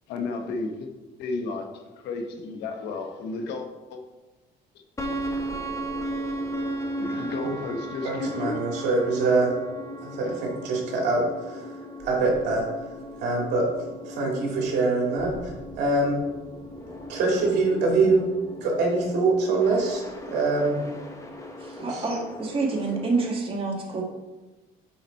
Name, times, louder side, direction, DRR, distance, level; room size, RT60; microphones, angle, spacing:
voice 1, 0.1-0.9 1.2-4.0 5.0-5.1 7.0-8.6 10.2-10.4, left 3 dB, 80° left, 1.1 m, -33 dB
sound 1, 5.0-23.3, right 1 dB, 20° left, 1.3 m, -36 dB
voice 2, 8.0-9.5 10.0-11.6 12.0-12.7 13.2-13.6 14.1-16.2 17.1-18.3 18.6-20.0 20.3-20.8 21.8-22.0, right 3 dB, 80° right, 2.4 m, -24 dB
voice 3, 21.6-24.0, right 3 dB, 30° right, 1.9 m, -27 dB
9.0 x 4.1 x 4.5 m
cardioid pair, 110°, 17 cm